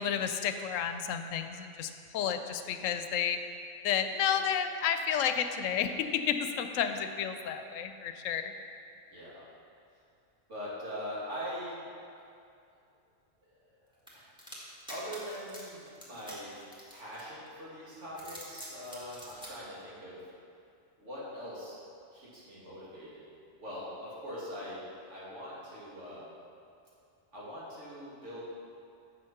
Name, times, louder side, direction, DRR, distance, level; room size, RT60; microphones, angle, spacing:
voice 1, 0.0-3.4 3.8-8.5, left 8 dB, 90° left, 8 dB, 1.0 m, -31 dB
voice 2, 9.1-9.4 10.5-11.8 13.6-13.7 14.1-14.3 14.9-16.5 16.9-20.3 21.0-21.8 22.1-23.2 23.6-26.3 27.3-28.4, equal, 65° right, -8 dB, 2.7 m, -42 dB
sound 1, 14.1-17.5 18.0-19.5, equal, 5° right, 1.6 m, -47 dB
7.4 x 6.4 x 5.9 m, 2.6 s
omnidirectional pair, 1.3 m